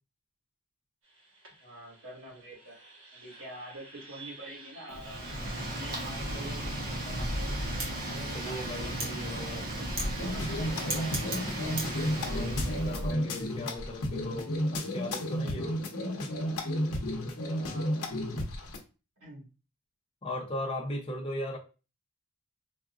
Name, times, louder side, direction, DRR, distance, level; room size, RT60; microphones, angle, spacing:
sound 1, 1.0-13.1, equal, 60° right, 1.2 m, -46 dB
voice 1, 1.6-2.8 3.1-7.6 8.1-9.8 10.3-11.5 17.6-17.9 19.2-19.5, right 1 dB, 80° right, -4 dB, 1.7 m, -47 dB
Wind, 4.9-13.1, right 1 dB, 40° right, 0.9 m, -35 dB
voice 2, 8.3-9.6 12.2-15.8 20.2-21.6, left 1 dB, 25° left, -2 dB, 0.6 m, -38 dB
sound 2, 10.2-18.8, equal, 80° left, 0.7 m, -32 dB
4.0 x 2.5 x 2.4 m, 0.32 s
head